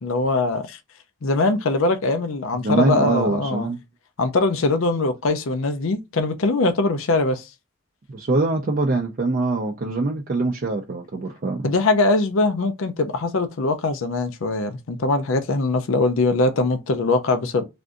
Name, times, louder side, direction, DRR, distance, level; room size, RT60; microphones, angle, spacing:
voice 1, 0.0-0.8 1.2-3.7 4.2-7.5 11.6-17.6, left 3 dB, 65° left, 0.5 m, -22 dB
voice 2, 2.6-3.8 8.1-11.7, right 2 dB, 40° right, 0.4 m, -23 dB
3.4 x 2.6 x 2.4 m
head